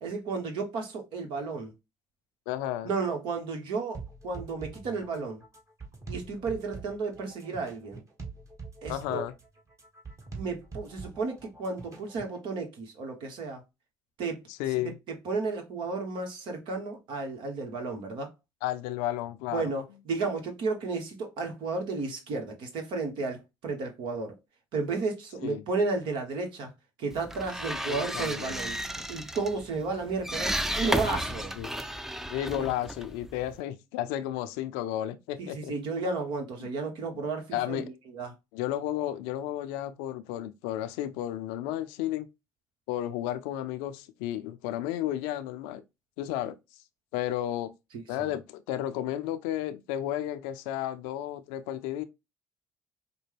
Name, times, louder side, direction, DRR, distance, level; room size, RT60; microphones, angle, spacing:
voice 1, 0.0-1.7 2.8-5.4 6.1-8.0 8.8-9.2 10.4-13.6 14.2-14.4 15.2-18.3 19.5-24.3 24.7-26.7 27.0-28.8 29.1-31.5 32.5-32.7 35.4-37.8 38.1-38.3 48.2-48.3, right 4 dB, 70° right, 1.1 m, -33 dB
voice 2, 2.5-2.9 8.9-9.3 14.5-15.0 18.6-19.7 25.4-25.6 27.7-28.5 31.6-31.8 32.3-35.7 36.6-36.7 37.5-37.9 38.5-42.3 42.9-45.8 46.2-46.6 47.1-47.7 48.1-52.0, left 12 dB, 85° left, 0.4 m, -33 dB
sound 1, 3.9-12.4, right 4 dB, 35° right, 1.7 m, -44 dB
sound 2, 27.1-33.6, equal, 5° right, 0.5 m, -34 dB
5.1 x 2.2 x 3.3 m
hypercardioid pair, 65°, 9 cm